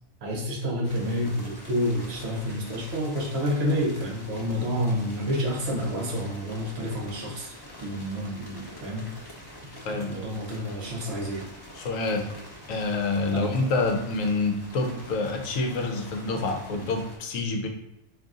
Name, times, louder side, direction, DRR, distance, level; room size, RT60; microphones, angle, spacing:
voice 1, 0.2-7.5 7.8-9.1 9.9-11.4 13.3-13.5, equal, 50° right, -2 dB, 1.0 m, -29 dB
sound 1, 0.8-17.2, left 1 dB, 35° left, 0.3 m, -45 dB
voice 2, 9.8-10.1 11.7-12.3 12.7-17.7, left 3 dB, 65° left, 3 dB, 0.9 m, -27 dB
3.9 x 2.6 x 3.6 m, 0.89 s
omnidirectional pair, 1.6 m